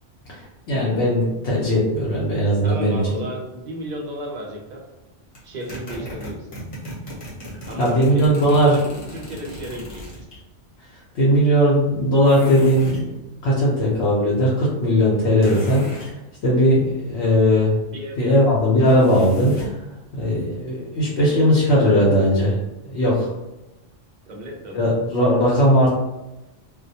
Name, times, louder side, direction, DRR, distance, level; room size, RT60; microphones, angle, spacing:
voice 1, 0.3-3.2 6.0-6.1 7.8-8.8 11.1-13.2 13.4-16.1 16.4-17.8 18.2-19.8 20.1-22.6 22.9-23.3 24.7-25.9, equal, 70° left, -5 dB, 0.9 m, -18 dB
voice 2, 2.6-4.8 5.4-6.5 7.7-10.3 17.9-18.7 24.3-24.9, equal, 55° right, -1 dB, 0.5 m, -34 dB
sound 1, 5.3-10.4 12.2-13.1 15.4-16.1 18.8-19.8, equal, 35° left, 0.7 m, -36 dB
2.2 x 2.1 x 2.7 m, 0.98 s
omnidirectional pair, 1.2 m